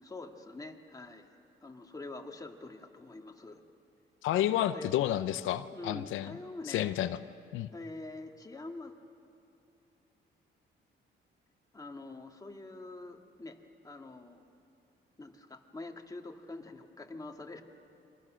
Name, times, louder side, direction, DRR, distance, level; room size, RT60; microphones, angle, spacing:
voice 1, 0.0-1.3 1.6-3.6 4.5-4.9 5.7-7.0 7.7-8.9 11.7-14.4 15.2-17.6, left 2 dB, 20° left, 3 dB, 2.1 m, -45 dB
voice 2, 4.2-6.3 6.7-7.2 7.5-7.7, left 12 dB, 85° left, 11 dB, 0.6 m, -30 dB
30.0 x 24.0 x 6.4 m, 2.7 s
cardioid pair, 90°, 20 cm